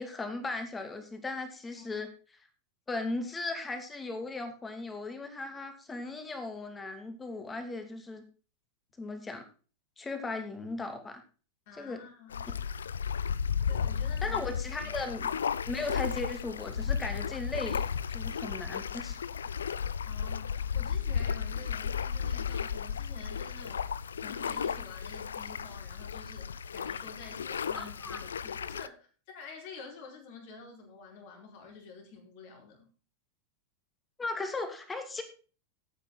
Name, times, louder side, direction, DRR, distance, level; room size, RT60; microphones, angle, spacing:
voice 1, 0.0-2.1 2.9-8.2 9.0-9.4 10.0-11.2 11.8-12.0 12.4-12.6 14.2-15.3 15.7-19.2 27.7-28.2 34.2-35.2, left 3 dB, 15° left, 7 dB, 2.7 m, -37 dB
voice 2, 11.7-12.6 13.7-14.4 14.8-14.9 18.4-19.1 20.0-29.1 29.3-32.9, left 4 dB, 50° left, 2 dB, 4.7 m, -49 dB
sound 1, 12.3-28.9, left 7 dB, 70° left, 0.5 m, -34 dB
13.5 x 9.2 x 4.0 m, 0.37 s
figure-of-eight pair, 90°, 0 cm